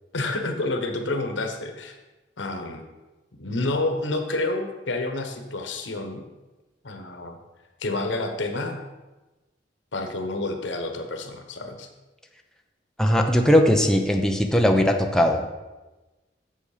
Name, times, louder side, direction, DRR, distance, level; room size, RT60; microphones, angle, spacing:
voice 1, 0.1-2.0 2.4-2.8 3.4-6.2 6.8-7.4 7.8-8.8 9.9-11.9, left 2 dB, 90° left, 5 dB, 1.2 m, -29 dB
voice 2, 13.0-15.5, equal, 5° left, 3 dB, 0.7 m, -19 dB
8.2 x 7.1 x 5.0 m, 1.1 s
head